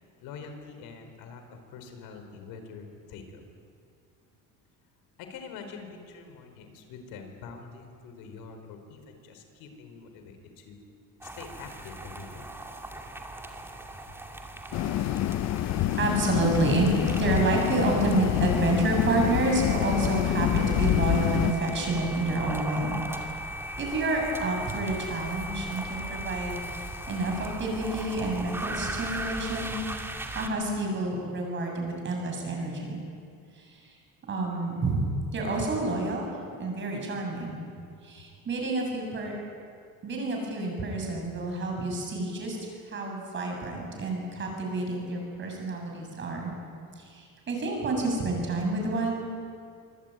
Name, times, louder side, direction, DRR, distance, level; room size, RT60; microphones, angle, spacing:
voice 1, 0.2-3.4 5.2-10.8 11.2-12.5, left 5 dB, 85° left, 6 dB, 4.8 m, -45 dB
sound 1, 11.2-30.5, right 1 dB, 5° right, 2.2 m, -38 dB
sound 2, 14.7-21.5, left 13 dB, 50° left, 0.7 m, -26 dB
voice 2, 16.0-23.3 23.8-26.6 27.1-29.8 30.3-33.0 33.5-33.9 34.3-35.0 35.3-36.3 36.6-37.6 38.0-39.3 40.0-46.5 47.0-49.3, right 2 dB, 35° right, 1 dB, 7.4 m, -29 dB
25.0 x 24.0 x 9.3 m, 2.3 s
cardioid pair, 160°, 34 cm